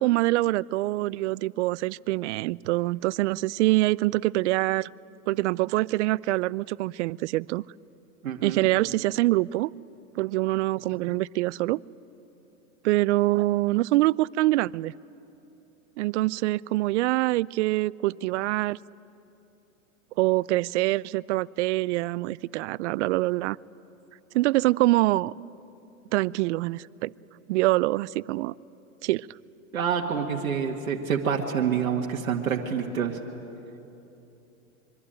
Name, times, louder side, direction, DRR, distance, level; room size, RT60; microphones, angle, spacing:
voice 1, 0.0-4.9 5.3-7.6 8.4-9.7 10.2-11.8 12.8-14.9 16.0-18.8 20.2-23.6 24.3-25.3 26.1-27.1 27.5-28.5 29.0-29.3, right 18 dB, 60° right, 23 dB, 0.5 m, -25 dB
voice 2, 8.2-8.7 29.7-33.2, right 7 dB, 85° right, 1 dB, 2.0 m, -27 dB
24.5 x 24.0 x 9.1 m, 2.9 s
hypercardioid pair, 115°, 41 cm